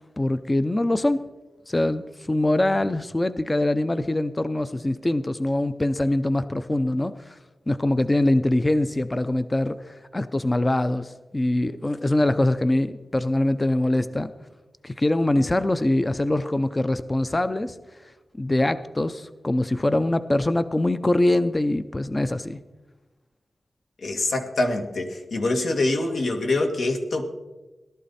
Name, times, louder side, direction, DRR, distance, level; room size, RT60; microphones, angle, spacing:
voice 1, 0.2-1.2 1.7-7.4 7.7-14.3 14.8-17.8 18.3-22.6, left 1 dB, 20° left, 12 dB, 0.5 m, -23 dB
voice 2, 24.0-27.2, left 2 dB, 80° left, 3 dB, 1.9 m, -25 dB
17.5 x 12.5 x 4.2 m, 1.1 s
wide cardioid pair, 105°, 0 cm